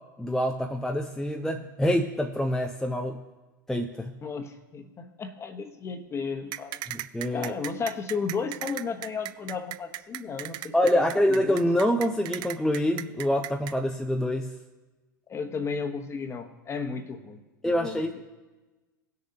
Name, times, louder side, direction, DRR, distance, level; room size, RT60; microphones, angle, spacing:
voice 1, 0.2-3.2 3.7-4.1 6.9-7.5 10.7-14.5 17.6-18.2, equal, 5° left, 2 dB, 0.6 m, -26 dB
voice 2, 4.2-6.8 7.3-11.6 15.3-18.2, left 5 dB, 25° left, 6 dB, 1.1 m, -34 dB
sound 1, 6.5-13.7, right 16 dB, 40° right, 0.4 m, -36 dB
18.0 x 6.7 x 2.8 m, 1.2 s
figure-of-eight pair, 90°, 11 cm